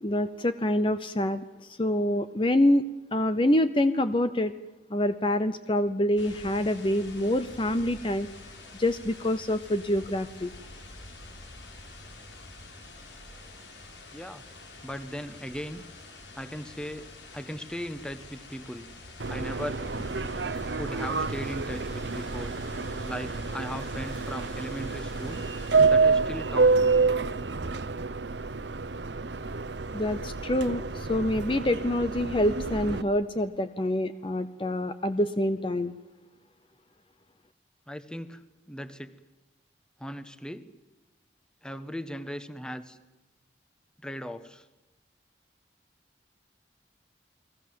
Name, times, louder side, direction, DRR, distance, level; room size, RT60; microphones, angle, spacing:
voice 1, 0.0-2.8 3.1-4.5 4.9-8.3 8.7-10.5 29.9-35.9, left 1 dB, 30° left, 11 dB, 0.8 m, -26 dB
sound 1, 6.2-25.9, left 2 dB, 90° left, 5.2 m, -47 dB
voice 2, 14.1-14.4 14.8-15.8 16.3-18.8 19.3-19.8 20.8-22.5 23.0-25.5 25.9-27.0 37.9-39.1 40.0-40.6 41.6-43.0 44.0-44.7, equal, 5° left, 12 dB, 1.1 m, -38 dB
Subway metro underground, 19.2-33.0, right 4 dB, 80° right, 1.0 m, -28 dB
sound 2, 19.9-25.0, left 1 dB, 50° left, 1.8 m, -49 dB
30.0 x 20.5 x 7.7 m, 1.1 s
head